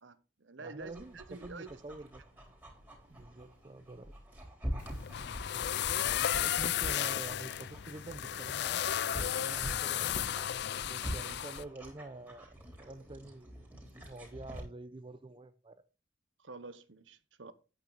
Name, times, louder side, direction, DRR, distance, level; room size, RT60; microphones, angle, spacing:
voice 1, 0.0-1.7 11.0-11.4 16.4-17.5, right 3 dB, 70° right, 1.0 m, -48 dB
voice 2, 0.6-2.2 3.1-4.1 6.2-8.8 9.1-10.3 10.8-12.5 12.8-13.6 14.0-15.8, right 2 dB, 25° right, 0.6 m, -47 dB
Dog, 0.8-14.6, equal, 10° right, 3.6 m, -45 dB
sound 1, 4.8-11.6, left 10 dB, 55° left, 0.4 m, -34 dB
8.9 x 8.8 x 4.0 m
head